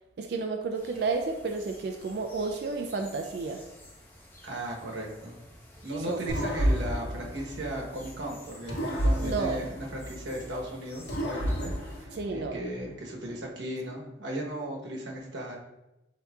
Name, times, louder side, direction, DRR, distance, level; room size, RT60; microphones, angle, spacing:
voice 1, 0.2-3.6 6.1-6.3 9.2-9.6 12.1-12.6, right 4 dB, 60° right, 4 dB, 0.4 m, -31 dB
sound 1, 0.7-12.1, left 1 dB, 10° left, 0.7 m, -51 dB
voice 2, 4.4-5.4 5.8-15.6, right 1 dB, 85° right, -1 dB, 1.0 m, -36 dB
sound 2, 6.3-8.2 8.7-10.6 11.1-12.8, equal, 80° left, 0.9 m, -31 dB
7.9 x 2.8 x 2.3 m, 0.96 s
head